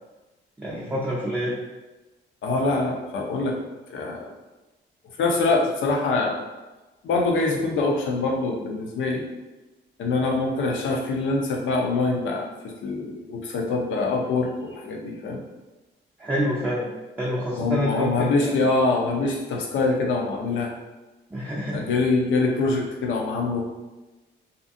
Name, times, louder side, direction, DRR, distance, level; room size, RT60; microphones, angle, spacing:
voice 1, 0.6-1.6 16.2-16.9 17.2-18.6 21.3-21.8, equal, 10° right, -7 dB, 0.5 m, -27 dB
voice 2, 2.4-3.6 3.9-4.3 5.2-6.4 7.0-9.2 10.0-15.4 17.6-20.7 21.7-23.7, left 3 dB, 75° left, 1 dB, 0.6 m, -24 dB
2.6 x 2.5 x 2.5 m, 1.1 s
cardioid pair, 90°, 20 cm